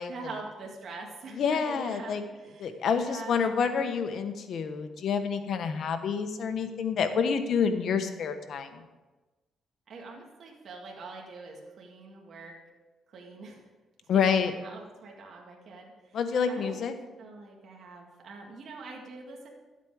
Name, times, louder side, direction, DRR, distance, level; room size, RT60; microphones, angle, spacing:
voice 1, 0.0-3.8 9.9-12.5 13.1-13.7 14.0-16.2 16.5-16.8 17.2-19.5, right 3 dB, 55° right, -1 dB, 2.0 m, -44 dB
voice 2, 1.3-2.2 2.6-8.8 14.1-14.5 16.1-16.9, left 6 dB, 65° left, 8 dB, 1.1 m, -28 dB
12.0 x 8.3 x 4.9 m, 1.2 s
cardioid pair, 90°, 0 cm